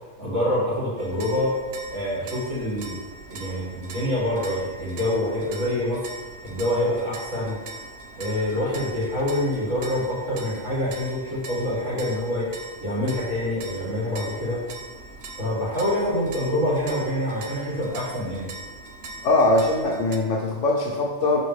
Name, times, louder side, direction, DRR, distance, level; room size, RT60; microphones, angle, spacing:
voice 1, 0.2-1.5 1.9-3.0 3.3-6.0 6.4-7.6 8.2-12.5 12.8-14.6 15.4-18.5, left 1 dB, 85° right, -8 dB, 3.0 m, -26 dB
sound 1, 1.0-20.2, right 2 dB, 65° right, 0.9 m, -41 dB
voice 2, 19.2-21.4, left 2 dB, 85° left, -1 dB, 1.2 m, -21 dB
11.0 x 4.3 x 3.3 m, 1.3 s
omnidirectional pair, 1.3 m